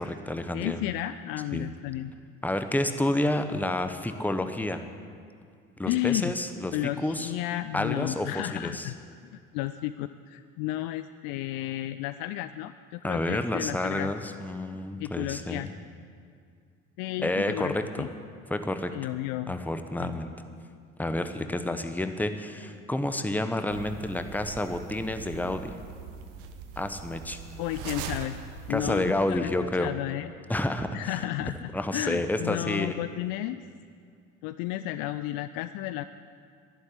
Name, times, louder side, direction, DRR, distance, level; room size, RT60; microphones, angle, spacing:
voice 1, 0.0-0.8 1.5-1.7 2.4-4.8 5.8-7.3 7.7-8.9 13.0-15.7 17.2-18.1 18.5-18.9 19.5-20.3 21.0-25.7 26.8-27.4 28.7-29.9 30.5-31.2 31.7-32.9, left 1 dB, 5° left, 8 dB, 1.0 m, -29 dB
voice 2, 0.5-2.1 5.9-6.3 6.7-9.0 9.2-14.1 15.0-15.7 17.0-18.1 18.9-19.5 20.0-20.2 27.6-28.4 28.7-29.5 29.8-30.3 30.9-33.6 34.4-36.0, left 14 dB, 55° left, 12 dB, 0.5 m, -32 dB
sound 1, 23.7-29.3, right 7 dB, 65° right, 1.2 m, -41 dB
11.5 x 11.5 x 8.1 m, 2.2 s
figure-of-eight pair, 60°, 40 cm